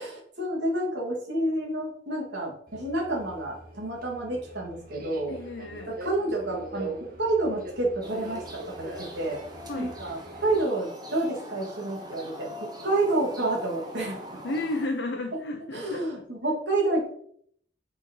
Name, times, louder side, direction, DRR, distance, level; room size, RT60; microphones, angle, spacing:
voice 1, 0.0-5.3 5.9-8.9 9.2-9.4 9.8-14.2 15.7-17.1, right 2 dB, 70° right, -3 dB, 2.4 m, -29 dB
Subway metro underground, 2.7-10.6, right 2 dB, 50° right, 0.9 m, -42 dB
voice 2, 5.3-6.0 9.7-10.0 14.4-16.3, left 2 dB, 75° left, 2 dB, 0.8 m, -33 dB
sound 1, 8.0-14.9, left 1 dB, 20° right, 1.0 m, -43 dB
5.5 x 4.3 x 4.5 m, 0.65 s
head